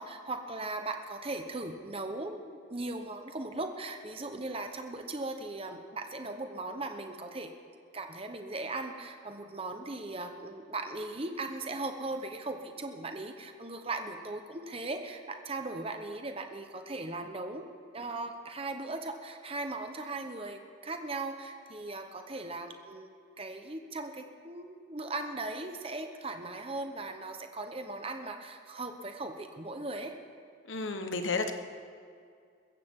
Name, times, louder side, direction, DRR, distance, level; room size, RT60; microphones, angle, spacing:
voice 1, 0.0-7.5 7.9-17.7 17.9-23.1 23.4-30.1, right 2 dB, 30° right, 5 dB, 1.0 m, -38 dB
voice 2, 30.7-31.5, left 3 dB, 70° left, 7 dB, 1.2 m, -32 dB
22.0 x 15.0 x 3.8 m, 2.3 s
head